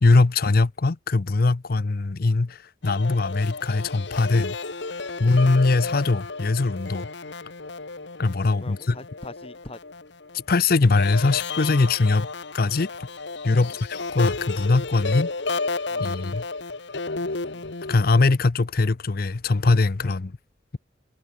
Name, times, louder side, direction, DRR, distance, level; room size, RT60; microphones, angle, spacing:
voice 1, 0.0-4.6 5.2-7.1 8.2-9.0 10.5-12.3 12.5-12.9 13.4-15.3 16.0-16.4 17.9-20.3, left 3 dB, 50° left, 0.6 m, -21 dB
sound 1, 2.8-10.4 10.9-17.9, left 3 dB, 65° left, 1.5 m, -32 dB
voice 2, 8.6-9.8 13.6-13.7 15.9-16.1 17.2-17.6 20.0-20.1, left 2 dB, 30° left, 1.4 m, -43 dB
head